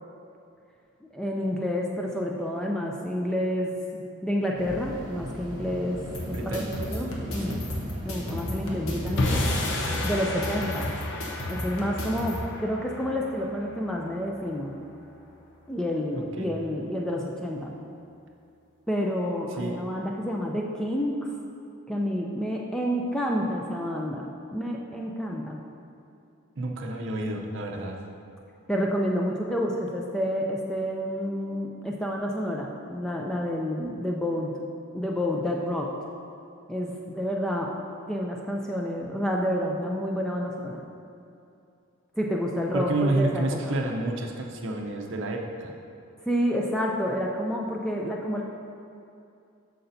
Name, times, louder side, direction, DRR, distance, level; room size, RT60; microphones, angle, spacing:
voice 1, 1.1-7.6 8.0-9.5 10.0-10.9 11.5-14.7 15.7-17.7 18.9-21.3 21.9-25.6 28.7-34.6 34.9-35.9 36.7-37.7 38.1-40.8 42.2-43.8 46.3-48.4, equal, 5° left, -1 dB, 0.3 m, -29 dB
sound 1, 4.6-9.7, equal, 20° right, 0.8 m, -39 dB
sound 2, 6.1-12.4, left 1 dB, 70° left, 1.1 m, -34 dB
voice 2, 6.3-6.7 7.4-7.6 16.2-16.5 19.6-19.8 26.6-28.0 42.7-45.7, right 2 dB, 55° right, 2 dB, 0.6 m, -30 dB
sound 3, 9.2-15.5, left 2 dB, 50° left, 0.6 m, -32 dB
8.3 x 6.7 x 2.7 m, 2.6 s
head